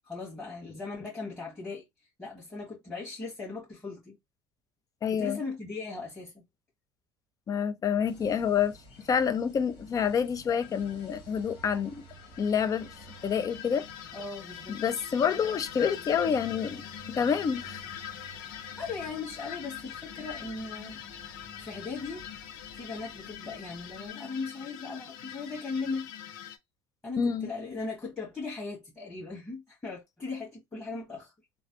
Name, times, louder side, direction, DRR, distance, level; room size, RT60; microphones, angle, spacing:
voice 1, 0.0-1.9 2.2-4.2 5.1-6.4 14.1-14.7 17.2-17.3 18.5-22.3 22.7-26.1 27.0-31.3, left 4 dB, 15° left, 1.5 m, -38 dB
voice 2, 5.0-5.4 7.5-8.8 9.1-12.0 12.4-12.9 13.2-13.8 14.7-16.8 17.1-17.8 27.2-27.5, left 7 dB, 35° left, 0.5 m, -28 dB
sound 1, 8.0-24.1, right 2 dB, 70° left, 1.4 m, -52 dB
sound 2, 10.6-11.1 12.0-26.6, left 10 dB, 85° left, 0.5 m, -43 dB
3.1 x 2.1 x 2.8 m
supercardioid pair, 95°, 10 cm